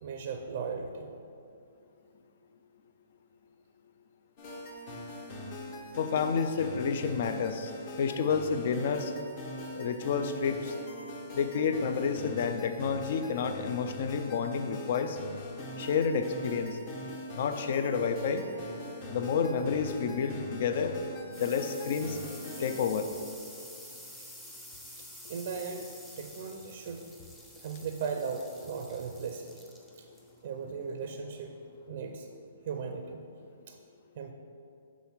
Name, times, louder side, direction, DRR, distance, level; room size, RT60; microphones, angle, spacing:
voice 1, 0.0-1.1 25.3-25.9 26.2-27.1 27.6-29.5 30.0-30.1 30.4-31.5 31.9-32.3 32.7-33.2 33.7-33.8 34.2-34.3, right 5 dB, 50° right, 4 dB, 0.5 m, -37 dB
sound 1, 4.4-22.8, left 1 dB, 35° left, 0.9 m, -42 dB
voice 2, 6.0-7.7 8.0-9.1 9.8-10.7 11.3-15.2 15.8-16.8 17.4-18.4 19.1-20.9 21.4-22.2 22.6-23.1, left 6 dB, 50° left, 8 dB, 0.5 m, -30 dB
sound 2, 21.1-31.9, equal, 5° left, 0.6 m, -50 dB
6.2 x 3.5 x 5.8 m, 2.5 s
hypercardioid pair, 155°, 0 cm